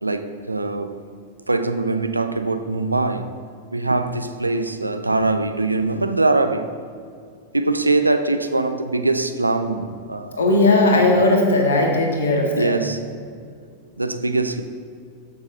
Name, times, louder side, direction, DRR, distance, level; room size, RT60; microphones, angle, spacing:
voice 1, 0.0-1.0 1.5-3.4 3.7-6.7 7.5-10.4 11.0-11.2 12.5-13.0 14.0-14.6, right 2 dB, 85° right, 0.5 m, -22 dB
voice 2, 10.4-12.7, left 2 dB, 65° left, 1.7 m, -17 dB
14.0 x 6.4 x 3.9 m
figure-of-eight pair, 90°, 0 cm